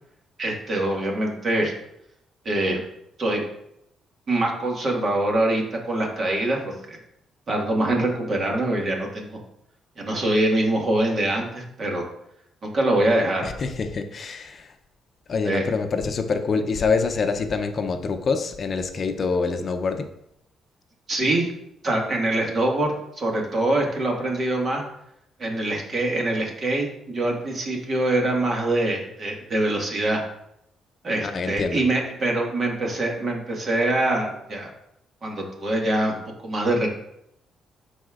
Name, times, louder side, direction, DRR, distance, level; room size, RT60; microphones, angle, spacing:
voice 1, 0.4-1.7 2.5-2.8 3.2-3.4 4.3-7.0 7.5-9.4 10.0-12.0 12.6-13.5 15.4-15.6 21.1-21.5 21.8-24.8 25.4-30.2 31.0-34.7 35.2-36.9, right 1 dB, 45° right, 0 dB, 1.7 m, -24 dB
voice 2, 13.4-14.7 15.3-20.1 31.2-31.8, left 4 dB, 45° left, 7 dB, 0.6 m, -25 dB
11.0 x 4.3 x 2.4 m, 0.78 s
cardioid pair, 90°, 0 cm